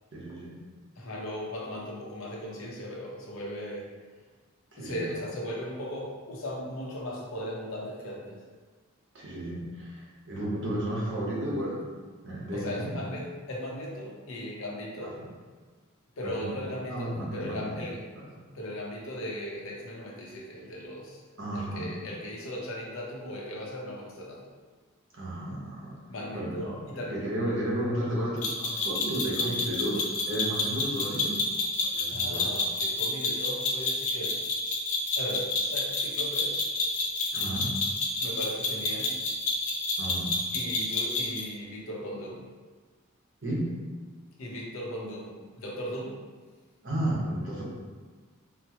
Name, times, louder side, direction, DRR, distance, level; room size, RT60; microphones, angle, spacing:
voice 1, 0.1-0.5 4.7-5.1 9.1-11.8 12.2-12.9 16.2-16.5 16.9-17.8 18.2-18.3 21.4-21.9 25.1-25.9 26.3-32.4 37.3-37.7 40.0-40.3 43.4-43.6 46.8-47.6, right 1 dB, 55° right, -5 dB, 1.0 m, -33 dB
voice 2, 1.0-3.9 4.8-8.4 12.5-15.2 16.2-18.0 18.3-21.2 21.5-24.5 26.1-27.2 32.1-34.4 35.2-36.6 38.2-39.1 40.5-42.5 44.4-46.2, equal, 70° left, -3 dB, 0.7 m, -37 dB
sound 1, 28.4-41.5, left 2 dB, 35° left, 0.4 m, -29 dB
4.3 x 2.1 x 2.8 m, 1.5 s
head